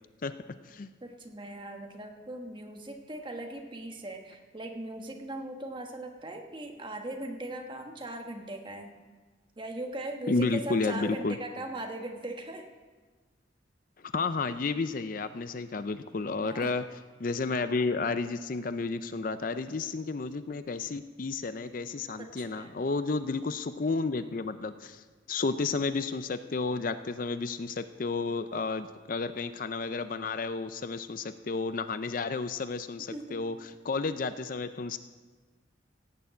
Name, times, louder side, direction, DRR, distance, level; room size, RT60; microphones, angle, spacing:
voice 1, 1.0-8.9 9.6-12.7 16.4-16.7 22.2-22.7 33.1-33.4, right 1 dB, 25° right, 3 dB, 1.3 m, -39 dB
voice 2, 10.3-11.4 14.1-16.8 17.2-35.0, left 3 dB, 45° left, 11 dB, 0.5 m, -32 dB
17.0 x 6.9 x 8.2 m, 1.4 s
head